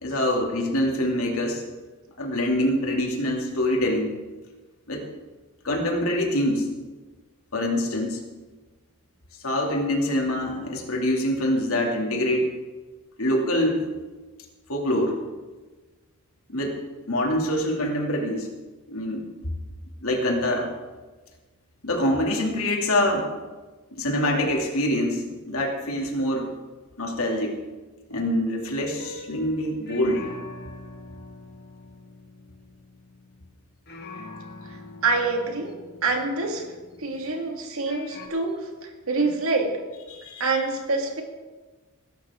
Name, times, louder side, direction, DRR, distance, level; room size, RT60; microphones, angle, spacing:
voice 1, 0.0-1.6 2.2-4.1 4.9-5.0 5.6-6.7 7.5-8.2 9.4-12.4 13.2-13.9 14.7-15.2 16.5-16.8 17.1-18.5 18.9-19.2 20.0-20.7 21.8-23.3 23.9-26.5 27.0-27.5 28.1-30.3 40.1-40.5, left 1 dB, 70° left, 0 dB, 2.8 m, -25 dB
sound 1, 29.0-33.6 33.9-37.4 37.9-38.3, left 2 dB, 45° left, 1.9 m, -44 dB
voice 2, 35.0-35.7 36.0-36.6 37.0-39.7 40.4-41.2, right 3 dB, 65° right, 3 dB, 2.2 m, -26 dB
20.0 x 12.0 x 3.8 m, 1.3 s
head